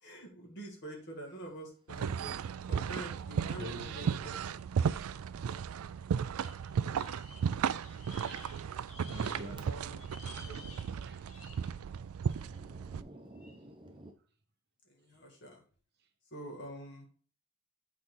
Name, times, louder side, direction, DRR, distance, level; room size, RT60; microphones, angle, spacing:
voice 1, 0.0-2.4 2.7-4.3 9.2-10.0 10.5-11.1 14.9-15.6 16.3-17.1, right 1 dB, 55° left, 2.1 m, -46 dB
sound 1, 1.9-13.0, right 7 dB, 90° right, 0.4 m, -35 dB
Thunder, 2.0-2.1 3.2-3.5 3.8-3.9 4.5-4.6 5.5-5.8 6.1-6.4 7.3-7.4 8.0-8.1 8.3-8.5 9.1-10.0 10.3-14.1, right 1 dB, 25° right, 0.8 m, -56 dB
voice 2, 3.6-4.3 4.9-5.2 9.0-9.8 11.0-11.4 13.8-13.9, right 2 dB, 50° right, 1.0 m, -45 dB
sound 2, 6.4-9.6 9.9-11.8 12.3-12.6 13.4-13.6, left 4 dB, 85° left, 1.7 m, -54 dB
8.4 x 4.3 x 3.9 m
head